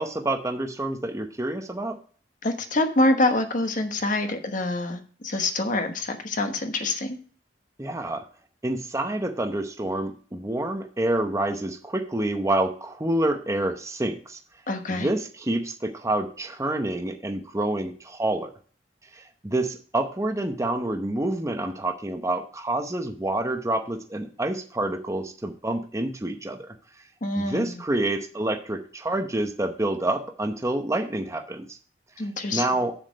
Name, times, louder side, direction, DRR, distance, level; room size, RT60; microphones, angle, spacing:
voice 1, 0.0-2.0 7.8-8.2 8.6-14.4 14.9-18.5 19.1-26.7 27.4-31.8 32.5-32.9, right 1 dB, 15° right, 5 dB, 0.7 m, -28 dB
voice 2, 2.4-7.2 14.7-15.1 27.2-27.7 32.2-32.6, left 2 dB, 45° left, 6 dB, 1.1 m, -25 dB
7.5 x 7.2 x 5.1 m, 0.43 s
head